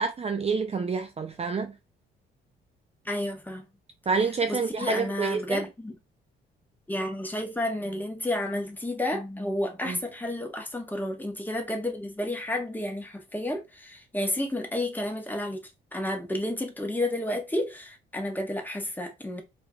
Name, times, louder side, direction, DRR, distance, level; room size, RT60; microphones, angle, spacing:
voice 1, 0.0-1.7 4.1-5.6 9.9-10.0, right 5 dB, 30° right, 0.7 m, -28 dB
voice 2, 3.0-3.6 4.5-6.0 6.9-19.4, left 1 dB, 10° left, 1.5 m, -31 dB
4.6 x 3.0 x 3.5 m
cardioid pair, 90°, 20 cm